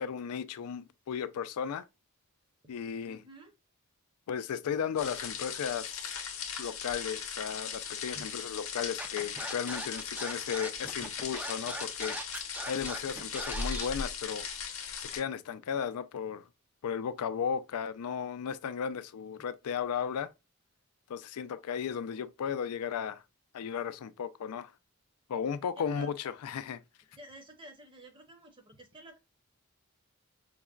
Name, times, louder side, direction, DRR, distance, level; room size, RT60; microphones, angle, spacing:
voice 1, 0.0-1.9 2.7-3.2 4.3-6.1 6.6-12.2 12.7-14.5 15.0-16.5 16.8-20.3 21.1-23.2 23.5-24.7 25.3-26.8, left 7 dB, 80° left, 0.4 m, -35 dB
voice 2, 3.0-3.5 8.1-8.3 25.8-26.1 27.1-29.2, right 1 dB, 20° right, 0.7 m, -51 dB
sound 1, 5.0-15.2, left 6 dB, 65° left, 0.7 m, -38 dB
Scratching (performance technique), 9.0-13.9, right 1 dB, 5° right, 0.3 m, -39 dB
4.6 x 2.1 x 2.3 m
head